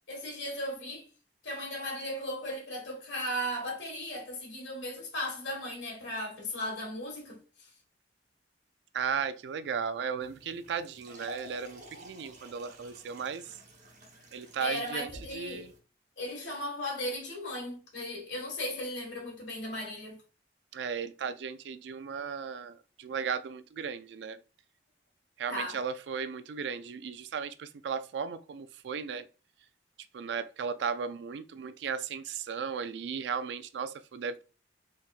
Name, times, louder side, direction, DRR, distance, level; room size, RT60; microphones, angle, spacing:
voice 1, 0.1-1.0 1.4-7.7 14.6-15.7 16.2-20.2 25.5-25.8, left 1 dB, 80° left, 1.6 m, -36 dB
voice 2, 8.9-13.5 14.3-15.7 20.7-24.4 25.4-29.3 30.1-34.4, right 6 dB, 70° right, 0.3 m, -36 dB
sound 1, 10.2-15.8, equal, 45° right, 1.2 m, -50 dB
4.5 x 3.5 x 2.4 m
head